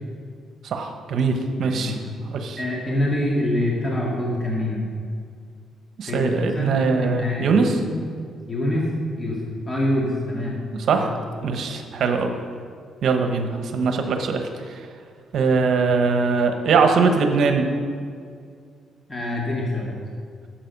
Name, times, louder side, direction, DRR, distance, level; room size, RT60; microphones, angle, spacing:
voice 1, 0.7-1.3 1.6-2.0 2.3-2.6 6.0-7.8 10.9-11.1 11.4-12.3 13.0-14.4 15.3-17.7, right 4 dB, 65° right, 5 dB, 1.1 m, -21 dB
voice 2, 2.6-4.8 6.0-8.0 8.5-8.9 9.2-9.4 9.7-10.6 10.9-11.0 19.1-19.9, left 1 dB, 25° left, -4 dB, 2.1 m, -25 dB
11.5 x 7.5 x 5.3 m, 2.2 s
cardioid pair, 90°, 0 cm